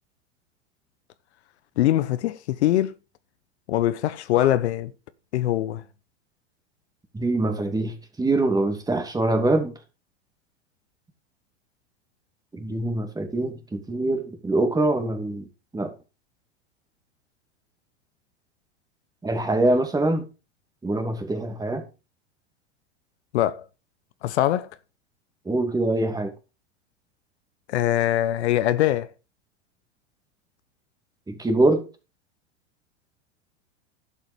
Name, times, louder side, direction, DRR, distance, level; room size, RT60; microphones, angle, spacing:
voice 1, 1.8-2.9 3.7-4.9 5.3-5.8 23.3-23.6 24.2-24.7 27.7-29.1, left 13 dB, 70° left, 1.0 m, -22 dB
voice 2, 7.1-9.7 12.5-15.5 15.7-15.9 19.2-20.2 20.8-21.8 25.5-26.3 31.3-31.8, right 2 dB, 10° right, 2.6 m, -24 dB
11.5 x 7.7 x 5.1 m
hypercardioid pair, 110°, 35 cm